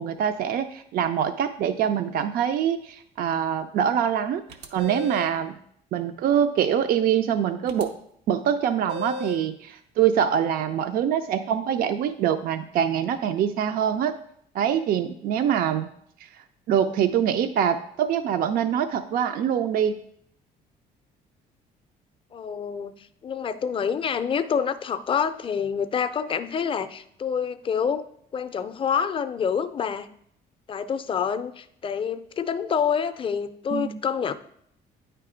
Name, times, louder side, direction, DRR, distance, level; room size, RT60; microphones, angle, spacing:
voice 1, 0.0-4.4 4.7-5.5 5.9-7.9 8.3-14.1 14.5-15.9 16.2-16.3 16.7-20.0 33.7-34.0, right 9 dB, 60° right, 9 dB, 0.4 m, -24 dB
sound 1, 4.5-5.4 7.7-7.8 8.9-9.5, left 3 dB, 90° right, 0.7 m, -35 dB
voice 2, 22.3-22.9 23.2-28.0 28.3-30.1 30.7-34.3, left 7 dB, 30° left, 11 dB, 0.4 m, -27 dB
8.9 x 3.4 x 4.9 m, 0.69 s
cardioid pair, 110°, 17 cm